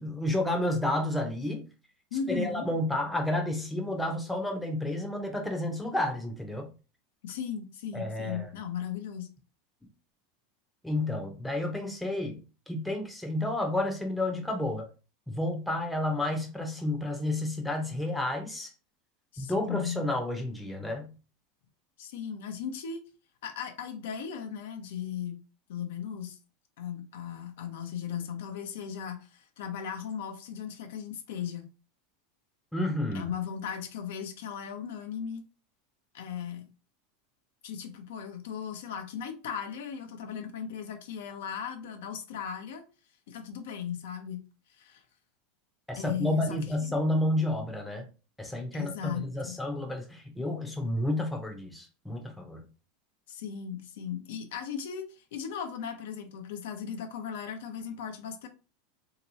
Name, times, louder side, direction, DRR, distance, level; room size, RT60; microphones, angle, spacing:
voice 1, 0.0-1.7 2.3-6.7 7.9-8.5 10.8-14.9 15.3-18.7 19.4-21.1 32.7-33.3 45.9-48.1 48.4-52.7, left 1 dB, 5° left, 0.7 m, -31 dB
voice 2, 2.1-2.7 7.2-9.3 19.3-20.0 22.0-23.0 23.4-25.4 25.7-26.4 26.8-31.7 33.1-35.4 36.1-36.6 37.6-42.8 43.3-44.4 44.7-45.0 46.0-47.0 48.7-49.6 53.3-58.5, left 8 dB, 80° left, 0.7 m, -37 dB
3.0 x 2.9 x 2.7 m
supercardioid pair, 135°, 0 cm